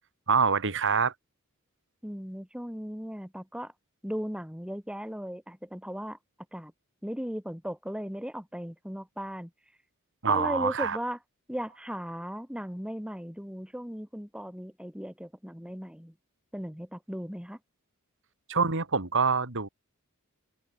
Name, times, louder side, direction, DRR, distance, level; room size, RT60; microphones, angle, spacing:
voice 1, 0.3-1.1 10.2-11.0 18.5-19.7, right 5 dB, 60° right, 2.9 m, -25 dB
voice 2, 2.0-3.7 4.0-6.2 6.5-6.7 7.0-9.5 10.3-11.2 11.5-16.1 16.5-17.6, equal, 5° right, 4.9 m, -37 dB
head